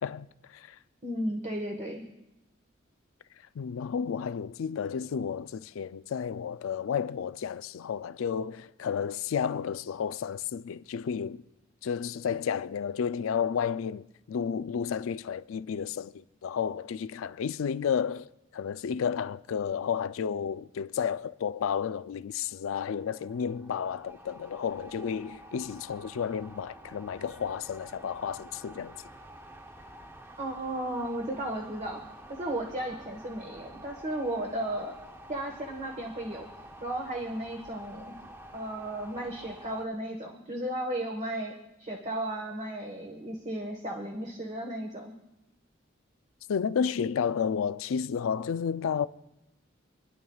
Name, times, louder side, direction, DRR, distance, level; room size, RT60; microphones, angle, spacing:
voice 1, 1.0-2.0 30.4-32.0 32.4-35.0 35.3-36.5 36.8-38.1 38.5-41.5 41.8-45.1, right 1 dB, 35° right, 1.3 m, -34 dB
voice 2, 3.6-11.4 11.8-18.3 18.5-29.0 46.5-49.1, left 7 dB, 80° left, 0.4 m, -32 dB
sound 1, 22.5-39.9, right 1 dB, 10° right, 0.6 m, -49 dB
28.5 x 11.0 x 2.3 m
head